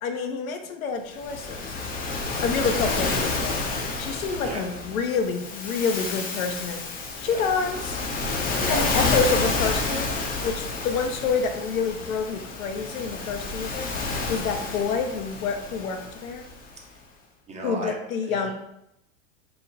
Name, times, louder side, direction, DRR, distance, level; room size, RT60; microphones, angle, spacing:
voice 1, 0.0-1.7 2.4-6.9 7.2-8.0 8.6-13.9 14.3-16.4 17.6-18.5, left 5 dB, 85° left, 5 dB, 0.7 m, -28 dB
Waves surf, 1.1-16.6, left 3 dB, 20° left, 0.6 m, -30 dB
voice 2, 8.6-8.9 16.9-17.0 17.5-18.0 18.3-18.5, right 2 dB, 15° right, 0 dB, 0.6 m, -34 dB
4.5 x 2.2 x 4.1 m, 0.82 s
hypercardioid pair, 115°, 40 cm